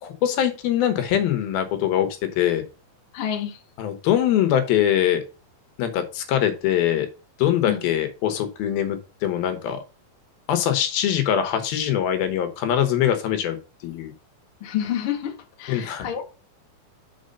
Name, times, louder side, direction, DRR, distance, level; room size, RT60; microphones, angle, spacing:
voice 1, 0.0-2.1 2.4-2.6 3.8-5.2 5.8-7.1 7.4-9.8 10.5-13.6 13.8-14.1 15.7-16.1, left 10 dB, 80° left, 2.8 m, -22 dB
voice 2, 3.1-3.6 7.7-7.8 14.6-16.2, left 10 dB, 60° left, 1.4 m, -29 dB
6.5 x 4.7 x 5.3 m
omnidirectional pair, 4.4 m